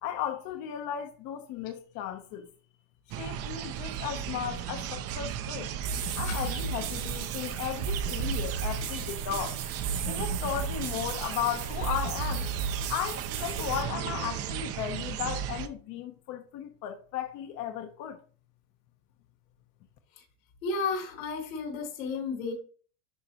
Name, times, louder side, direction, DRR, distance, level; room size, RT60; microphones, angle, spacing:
voice 1, 0.0-2.5 3.2-5.7 6.2-9.6 10.0-18.2, left 10 dB, 45° left, 0.9 m, -35 dB
sound 1, 3.1-15.7, right 9 dB, 40° right, 0.7 m, -36 dB
sound 2, 5.8-13.8, right 5 dB, 60° right, 2.4 m, -34 dB
voice 2, 20.6-22.5, left 4 dB, 85° left, 3.1 m, -33 dB
11.0 x 3.8 x 2.9 m
supercardioid pair, 130°, 39 cm